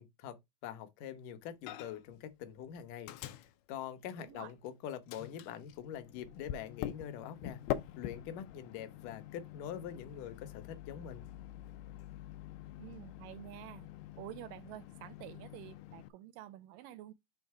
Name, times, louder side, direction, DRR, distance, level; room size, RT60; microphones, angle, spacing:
voice 1, 0.0-3.1 3.7-7.6 8.0-11.3, left 9 dB, 70° left, 2.3 m, -44 dB
Microwave oven, 1.7-2.2 2.4-4.7 5.1-16.1, left 13 dB, 85° left, 2.6 m, -45 dB
voice 2, 4.2-4.5 12.8-13.9 14.2-17.1, right 14 dB, 80° right, 2.0 m, -49 dB
6.5 x 3.9 x 4.7 m
omnidirectional pair, 4.3 m